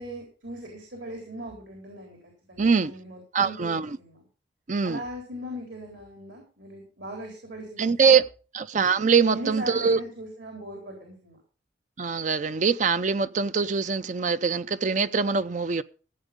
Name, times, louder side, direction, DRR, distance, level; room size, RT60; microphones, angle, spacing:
voice 1, 0.0-4.2 4.8-8.2 9.3-11.4, right 1 dB, 75° right, 4.0 m, -39 dB
voice 2, 2.6-2.9 3.3-3.9 4.7-5.0 7.8-8.3 8.5-10.0 12.0-15.8, right 5 dB, 40° right, 0.5 m, -23 dB
15.5 x 8.1 x 5.1 m
head